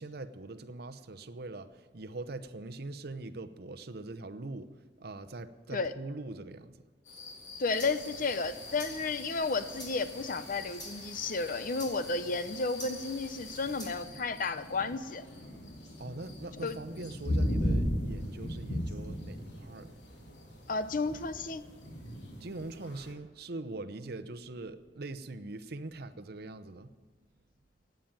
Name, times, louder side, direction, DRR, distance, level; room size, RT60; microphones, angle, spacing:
voice 1, 0.0-4.7 5.0-6.8 16.0-20.0 22.4-26.9, right 2 dB, 60° right, 11 dB, 0.8 m, -42 dB
sound 1, 7.1-23.1, equal, 85° left, 3.3 m, -38 dB
sound 2, 7.4-14.1, equal, 25° left, 4.6 m, -48 dB
voice 2, 7.6-15.2 16.6-16.8 20.7-21.6, left 3 dB, 50° left, 12 dB, 0.8 m, -32 dB
16.0 x 9.3 x 9.0 m, 1.4 s
head